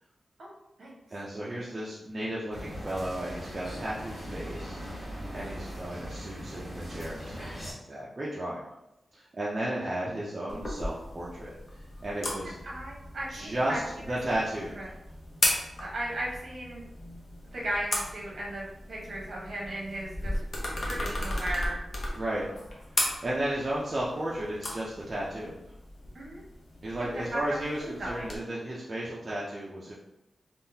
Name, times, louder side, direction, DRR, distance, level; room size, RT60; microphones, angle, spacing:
voice 1, 1.1-8.6 9.1-11.5 12.0-12.5 13.3-13.8 14.1-14.9 22.2-22.5 23.2-25.6 26.8-29.9, right 1 dB, 30° right, -6 dB, 0.4 m, -34 dB
sound 1, 2.5-7.7, equal, 20° left, 1.4 m, -40 dB
sound 2, 10.5-28.4, left 1 dB, 50° left, 0.6 m, -36 dB
voice 2, 12.6-14.2 14.7-14.9 15.8-16.8 17.5-20.3 20.9-21.8 26.1-26.4 26.9-28.2, right 1 dB, 55° right, -4 dB, 1.0 m, -36 dB
3.6 x 2.3 x 2.7 m, 0.90 s
wide cardioid pair, 170°, 0 cm